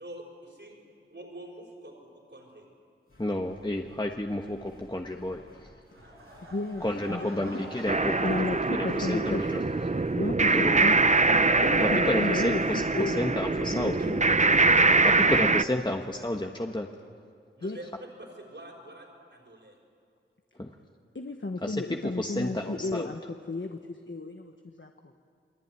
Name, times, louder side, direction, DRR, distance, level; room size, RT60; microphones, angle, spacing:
voice 1, 0.0-2.7 12.4-12.8 13.9-14.1 16.2-16.3 17.6-19.8, right 1 dB, 60° right, -1 dB, 5.2 m, -46 dB
sound 1, 3.1-16.7, left 1 dB, 80° left, 7.9 m, -56 dB
voice 2, 3.2-5.7 6.8-8.4 8.7-9.6 10.5-10.8 11.8-13.9 15.0-16.9 20.6-20.7 21.6-21.8 22.2-23.1, left 1 dB, 20° left, 2 dB, 1.4 m, -31 dB
sound 2, 5.9-10.9 11.2-11.6 12.1-12.2, right 1 dB, 90° right, 7.1 m, -48 dB
voice 3, 6.5-7.6 8.2-9.4 10.1-11.0 11.6-13.4 13.7-14.2 17.6-17.8 21.1-23.2 23.5-24.9, left 3 dB, 65° left, 4 dB, 1.3 m, -33 dB
sound 3, 7.9-15.6, right 3 dB, 35° right, 0.7 m, -23 dB
28.5 x 21.0 x 9.7 m, 2.3 s
wide cardioid pair, 55°, 21 cm